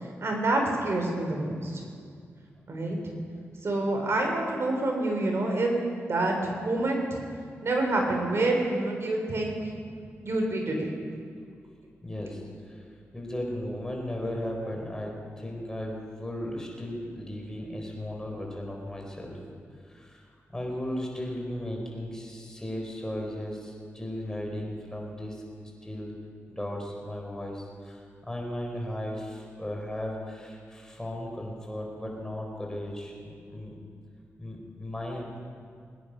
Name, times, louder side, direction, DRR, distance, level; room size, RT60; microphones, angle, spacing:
voice 1, 0.2-1.9 2.7-3.1 3.6-5.8 6.1-7.2 7.6-9.7 10.2-10.9, right 2 dB, 55° right, 1 dB, 3.7 m, -27 dB
voice 2, 12.0-12.9 13.1-19.4 19.7-25.4 25.8-26.2 26.5-33.8 34.4-35.3, left 1 dB, 10° left, 0 dB, 4.3 m, -36 dB
22.5 x 10.0 x 5.3 m, 2.2 s
cardioid pair, 65°, 5 cm